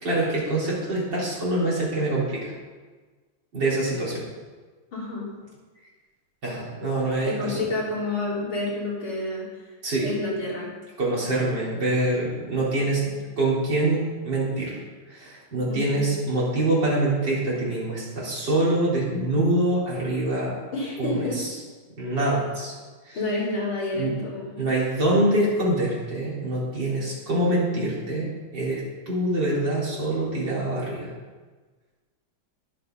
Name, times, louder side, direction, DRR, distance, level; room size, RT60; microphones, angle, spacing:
voice 1, 0.0-2.5 3.5-4.2 6.4-7.6 9.8-10.1 11.0-14.8 15.1-20.6 21.0-21.5 22.0-22.7 23.0-23.2 24.0-24.1 24.6-28.8 29.1-31.1, right 1 dB, 55° right, -6 dB, 4.8 m, -25 dB
voice 2, 4.9-5.3 7.2-9.5 10.0-10.7 15.7-16.0 20.7-21.4 23.1-24.5, left 2 dB, 75° left, -6 dB, 4.5 m, -29 dB
20.5 x 7.8 x 4.1 m, 1.4 s
omnidirectional pair, 2.2 m